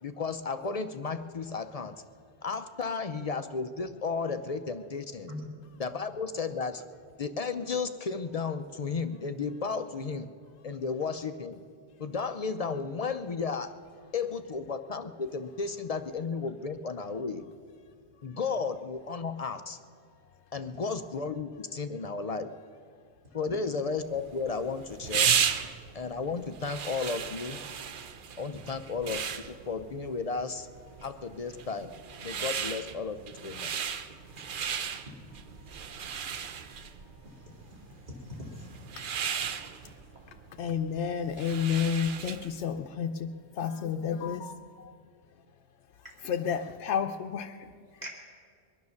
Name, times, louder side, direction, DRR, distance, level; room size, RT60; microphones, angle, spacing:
voice 1, 0.0-1.9 2.4-5.3 5.8-6.8 7.2-10.3 10.6-11.6 12.0-13.7 14.1-17.4 18.2-19.8 20.5-22.5 23.3-25.3 25.9-27.6 28.4-30.7 31.0-31.9 32.2-33.2 33.4-34.0, left 4 dB, 45° left, 10 dB, 0.5 m, -33 dB
sound 1, 24.1-42.6, right 7 dB, 55° right, 0.8 m, -35 dB
voice 2, 36.1-36.5 37.3-37.5 38.1-38.7 46.0-46.1 48.0-48.1, left 1 dB, 35° right, -3 dB, 3.1 m, -43 dB
voice 3, 40.6-43.3 43.6-44.9 46.2-47.7, left 7 dB, 90° left, 5 dB, 0.9 m, -31 dB
22.0 x 9.6 x 6.4 m, 2.1 s
omnidirectional pair, 1.1 m